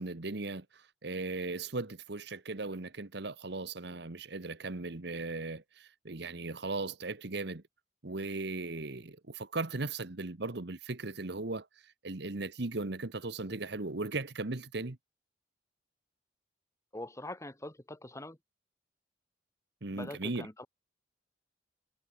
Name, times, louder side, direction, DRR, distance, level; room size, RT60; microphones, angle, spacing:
voice 1, 0.0-7.6 8.0-15.0 19.8-20.5, right 3 dB, 65° right, 1.3 m, -37 dB
voice 2, 16.9-18.4 19.9-20.7, left 1 dB, 15° left, 2.4 m, -43 dB
head